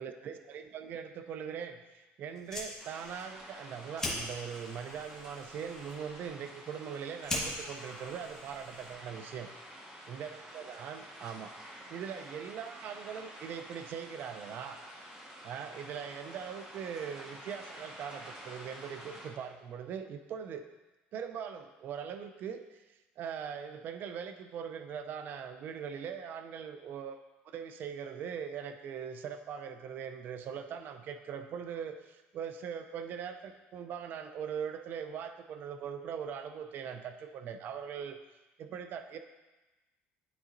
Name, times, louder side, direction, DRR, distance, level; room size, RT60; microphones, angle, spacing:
voice 1, 0.0-9.5 10.1-14.8 15.4-20.6 21.1-27.2 27.4-38.2 38.6-39.2, right 7 dB, 50° right, 8 dB, 0.4 m, -41 dB
Fire, 2.3-9.2, left 1 dB, 15° left, 1.3 m, -42 dB
sound 1, 2.8-19.3, equal, 20° right, 1.4 m, -49 dB
11.0 x 3.7 x 2.6 m, 1.1 s
cardioid pair, 135°, 4 cm